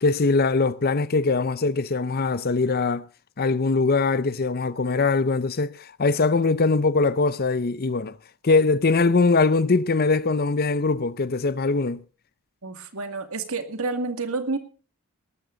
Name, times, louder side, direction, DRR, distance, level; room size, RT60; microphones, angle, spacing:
voice 1, 0.0-3.1 3.4-8.2 8.4-12.0, left 3 dB, 45° left, 0.6 m, -22 dB
voice 2, 12.6-14.6, right 3 dB, 70° right, 2.2 m, -29 dB
18.5 x 13.5 x 3.9 m
head